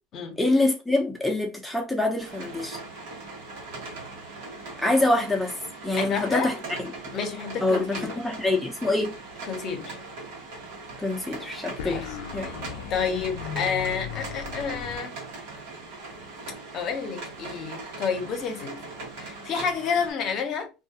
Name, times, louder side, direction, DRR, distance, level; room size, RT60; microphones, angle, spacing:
voice 1, 0.4-2.8 4.8-5.5 5.8-6.9 7.6-9.1 11.0-12.1 12.3-12.5, left 2 dB, 5° left, 0.6 m, -25 dB
sound 1, 2.2-20.1, right 3 dB, 75° right, 1.1 m, -40 dB
voice 2, 6.0-6.6 7.1-8.1 9.5-10.0 11.8-12.1 12.4-12.5 12.9-15.1 16.7-18.9 19.2-20.7, left 6 dB, 50° left, 0.7 m, -30 dB
sound 2, 11.8-15.0, left 8 dB, 75° left, 0.3 m, -37 dB
2.4 x 2.2 x 2.7 m
supercardioid pair, 90°, 0 cm